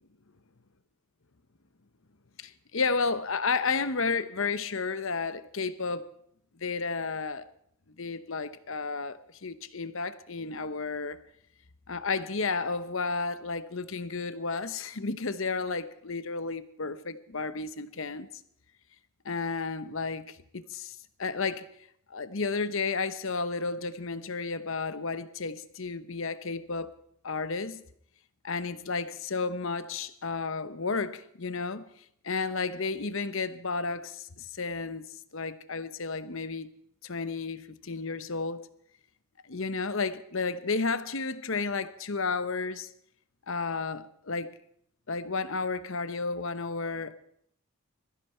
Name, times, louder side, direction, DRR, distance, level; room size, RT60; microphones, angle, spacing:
voice 1, 2.4-6.0 6.6-7.4 8.0-11.2 11.9-18.3 19.2-21.7 22.1-26.9 27.2-27.8 28.4-31.8 32.2-36.7 37.0-38.7 39.5-42.9 43.5-44.5 45.1-47.2, left 4 dB, 65° left, 1.0 m, -32 dB
22.0 x 14.5 x 4.5 m
head